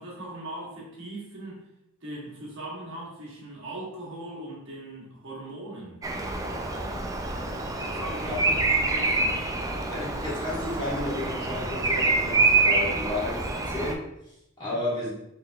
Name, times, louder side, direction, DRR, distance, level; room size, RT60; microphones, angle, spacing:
voice 1, 0.0-1.6 2.0-6.0 7.8-9.4 14.6-14.8, right 1 dB, 60° right, -4 dB, 1.4 m, -40 dB
Bird vocalization bird call bird song, 6.0-13.9, right 3 dB, 15° right, 0.3 m, -26 dB
voice 2, 9.9-14.0 14.6-15.1, left 1 dB, 20° left, -7 dB, 1.5 m, -32 dB
5.2 x 3.7 x 2.3 m, 0.83 s
head